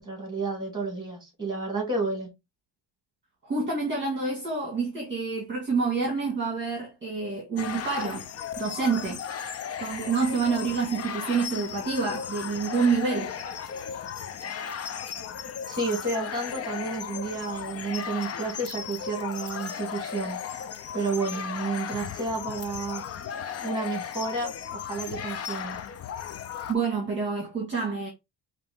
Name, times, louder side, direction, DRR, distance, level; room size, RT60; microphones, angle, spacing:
voice 1, 0.0-2.3 15.7-20.4 20.9-23.0 23.6-25.8, right 3 dB, 10° right, 2.6 m, -31 dB
voice 2, 3.4-8.3 8.6-9.2 9.8-13.3 26.7-28.1, right 4 dB, 25° right, 1.6 m, -27 dB
sound 1, 7.6-26.7, left 8 dB, 35° left, 0.4 m, -36 dB
5.0 x 2.8 x 3.5 m
cardioid pair, 160°, 44 cm